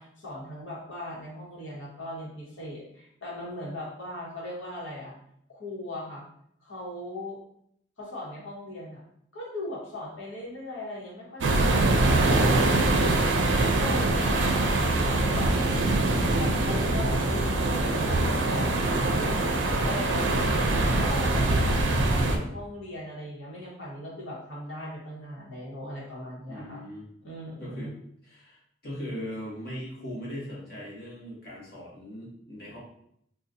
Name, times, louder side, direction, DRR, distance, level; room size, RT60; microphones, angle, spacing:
voice 1, 0.0-5.1 5.5-6.2 6.6-7.4 8.0-9.0 9.3-13.3 13.7-15.5 16.4-20.6 21.0-26.8 27.2-27.9, left 1 dB, 80° left, -5 dB, 1.2 m, -39 dB
sound 1, 11.4-22.4, right 2 dB, 70° right, 0.4 m, -23 dB
voice 2, 14.1-14.5 16.8-16.9 20.3-20.5 26.5-27.0 27.6-27.9 28.2-32.8, equal, 50° left, -6 dB, 1.2 m, -39 dB
sound 2, 16.8-22.3, equal, 30° right, 0.6 m, -40 dB
3.9 x 2.4 x 2.6 m, 0.71 s
head